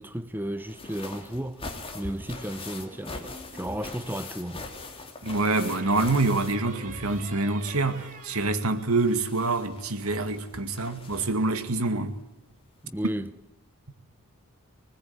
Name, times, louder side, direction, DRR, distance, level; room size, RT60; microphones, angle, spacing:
voice 1, 0.0-1.6 1.9-4.7 12.8-13.3, right 1 dB, 10° right, 0.9 m, -33 dB
sound 1, 0.6-7.3 7.6-11.6 12.6-12.7 13.1-13.2, left 3 dB, 25° left, 3.3 m, -42 dB
sound 2, 2.9-3.8 5.7-9.4, right 3 dB, 40° right, 4.2 m, -45 dB
voice 2, 5.2-12.2 13.0-13.1, right 2 dB, 80° right, 2.2 m, -26 dB
24.5 x 20.0 x 9.6 m
head